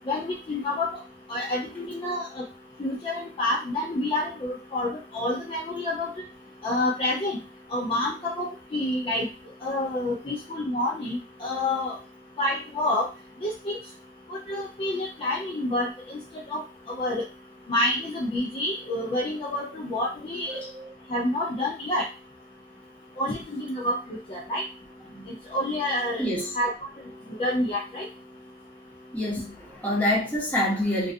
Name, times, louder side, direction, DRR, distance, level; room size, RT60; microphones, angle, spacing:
voice 1, 0.1-0.9 1.3-2.4 2.8-6.2 6.6-7.4 7.7-9.3 9.6-12.0 12.4-13.1 13.4-13.8 14.3-16.2 16.5-16.6 16.9-17.2 17.7-20.6 21.1-22.1 23.2-24.0 24.3-24.6 25.5-26.3 26.5-26.7 27.4-28.1, left 1 dB, 30° left, 0.4 m, -28 dB
voice 2, 20.5-20.9 25.1-25.3 26.2-26.5 29.1-31.1, left 1 dB, 10° left, 0.9 m, -27 dB
2.4 x 2.2 x 2.5 m
head